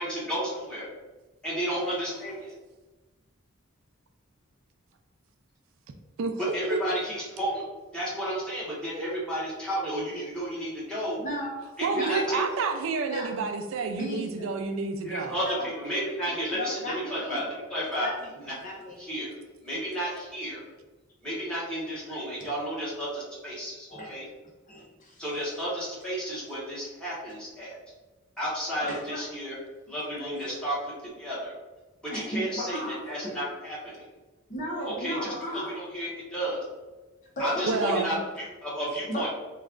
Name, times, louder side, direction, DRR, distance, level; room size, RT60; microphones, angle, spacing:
voice 1, 0.0-0.8 1.4-2.5 6.4-7.6 7.9-11.2 11.8-12.4 15.0-18.1 18.4-18.5 19.0-19.3 19.6-20.6 21.2-24.3 25.2-27.7 28.4-29.5 29.9-31.5 32.0-32.8 33.1-34.0 34.8-36.6 37.4-39.3, equal, 5° left, -8 dB, 1.2 m, -32 dB
voice 2, 11.2-11.6 11.9-12.2 13.1-13.3 13.9-14.5 15.4-15.7 16.5-17.4 18.0-18.3 18.6-18.9 23.9-24.1 24.7-25.2 28.8-29.2 32.1-33.3 34.5-35.7 37.4-37.9 39.1-39.2, equal, 40° left, -2 dB, 0.9 m, -35 dB
voice 3, 11.8-15.4 37.7-38.2, right 4 dB, 70° right, 5 dB, 0.4 m, -29 dB
3.1 x 2.4 x 3.6 m, 1.2 s
head